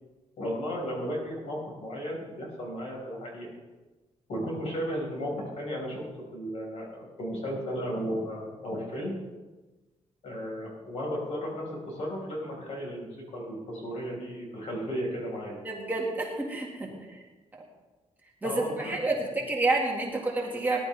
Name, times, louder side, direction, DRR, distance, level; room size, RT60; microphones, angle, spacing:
voice 1, 0.4-3.5 4.3-6.1 6.3-9.2 10.2-15.6 16.9-17.0 18.4-19.0, equal, 60° left, -2 dB, 5.0 m, -34 dB
voice 2, 15.6-16.9 18.4-20.8, right 2 dB, 15° right, -2 dB, 2.0 m, -29 dB
19.0 x 11.5 x 3.4 m, 1.2 s
wide cardioid pair, 170°, 12 cm